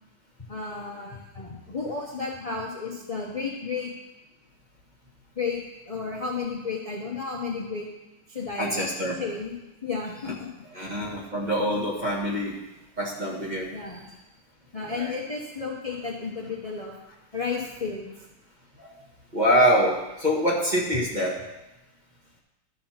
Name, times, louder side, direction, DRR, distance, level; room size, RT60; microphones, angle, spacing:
voice 1, 0.5-3.9 5.4-7.9 8.3-8.8 9.2-9.5 9.8-10.5 10.7-10.9 13.7-14.1 14.7-16.9 17.3-18.1, left 4 dB, 30° left, -3 dB, 0.7 m, -32 dB
voice 2, 8.6-9.2 10.7-12.6 13.0-13.7 14.8-15.1 18.8-18.9 19.3-21.4, equal, 25° right, -3 dB, 1.5 m, -25 dB
12.5 x 4.4 x 5.8 m, 1.0 s
omnidirectional pair, 2.3 m